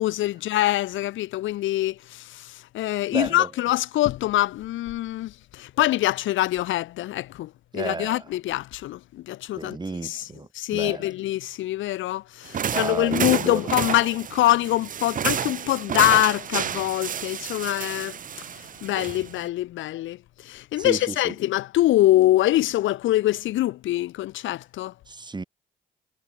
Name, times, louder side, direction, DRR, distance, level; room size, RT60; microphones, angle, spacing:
voice 1, 0.0-9.8 10.0-10.3 10.5-18.2 18.6-24.9, left 15 dB, 75° left, 0.6 m, -24 dB
voice 2, 3.1-3.5 7.7-8.3 9.5-11.1 12.7-13.6 20.8-21.3 25.1-25.4, right 3 dB, 20° right, 3.2 m, -32 dB
sound 1, 12.5-19.5, right 8 dB, 45° right, 0.7 m, -30 dB
cardioid pair, 90°, 20 cm